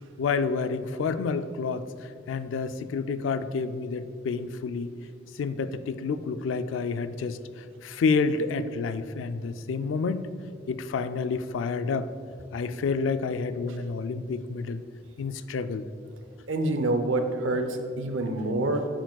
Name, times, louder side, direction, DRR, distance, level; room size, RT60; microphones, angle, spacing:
voice 1, 0.2-4.9 5.4-10.3 10.7-12.1 12.5-14.8 15.2-15.9, left 4 dB, 85° left, 12 dB, 0.3 m, -29 dB
voice 2, 16.5-18.9, right 2 dB, 85° right, 7 dB, 0.6 m, -27 dB
7.5 x 7.1 x 2.3 m, 2.2 s
head